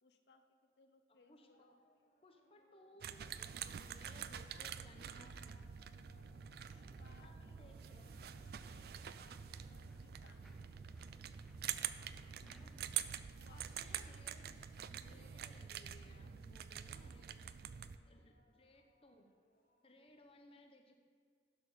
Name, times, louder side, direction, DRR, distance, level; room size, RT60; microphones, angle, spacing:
voice 1, 0.0-1.7 4.2-4.7 5.1-5.5 6.6-7.6 8.3-12.2 13.0-13.9 14.2-14.7 18.0-18.4, left 4 dB, 70° left, 7 dB, 0.7 m, -70 dB
voice 2, 1.1-1.8 2.2-5.7 6.9-8.1 12.4-12.9 13.5-17.5 18.0-19.3 19.8-21.0, left 1 dB, 30° left, 3 dB, 0.9 m, -63 dB
sound 1, 1.2-20.3, left 1 dB, 55° left, 1.5 m, -74 dB
sound 2, 3.0-18.0, right 9 dB, 60° right, 0.3 m, -46 dB
sound 3, 5.2-12.9, equal, ahead, 0.6 m, -64 dB
11.0 x 4.3 x 6.7 m, 2.1 s
head